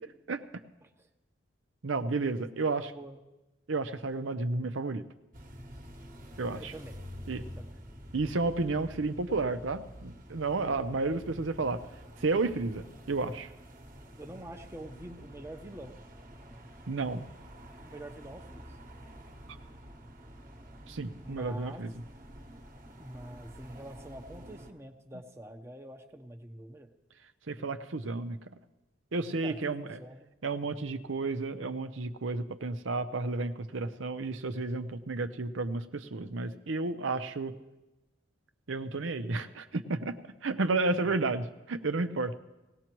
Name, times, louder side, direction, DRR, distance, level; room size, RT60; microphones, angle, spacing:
voice 1, 1.8-2.9 3.7-5.1 6.4-6.7 7.3-7.5 8.1-11.8 12.2-13.5 16.9-17.3 20.9-21.9 27.5-28.4 29.1-30.0 30.4-37.6 38.7-42.4, right 3 dB, 75° right, 9 dB, 0.7 m, -32 dB
voice 2, 2.4-3.2 6.6-7.0 7.6-7.7 14.2-16.0 17.8-18.7 21.2-21.8 23.0-26.9 29.4-30.3, right 1 dB, 15° right, 5 dB, 0.8 m, -46 dB
sound 1, 5.3-24.7, equal, 40° right, 1.2 m, -48 dB
19.0 x 17.5 x 3.0 m, 1.0 s
head